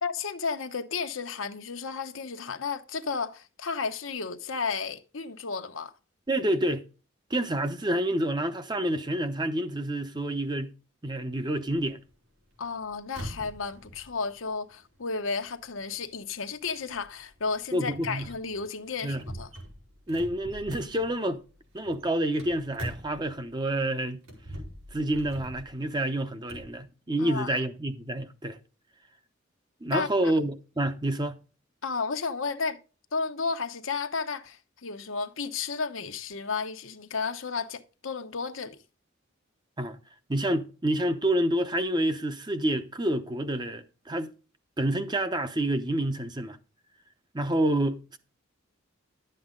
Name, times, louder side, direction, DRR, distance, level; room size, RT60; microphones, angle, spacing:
voice 1, 0.0-5.9 12.6-19.5 27.2-27.6 29.9-30.3 31.8-32.8 33.1-38.8, left 5 dB, 80° left, 1.0 m, -33 dB
voice 2, 6.3-6.8 7.3-10.7 11.0-12.0 17.7-18.3 19.0-19.2 20.1-21.4 21.7-24.2 24.9-28.6 29.8-31.4 39.8-40.0 40.3-44.3 44.8-46.6 47.3-48.2, right 1 dB, 20° right, 0.8 m, -28 dB
sound 1, 11.7-23.7 24.1-26.7, equal, 85° right, 4.6 m, -44 dB
11.5 x 7.7 x 3.8 m
head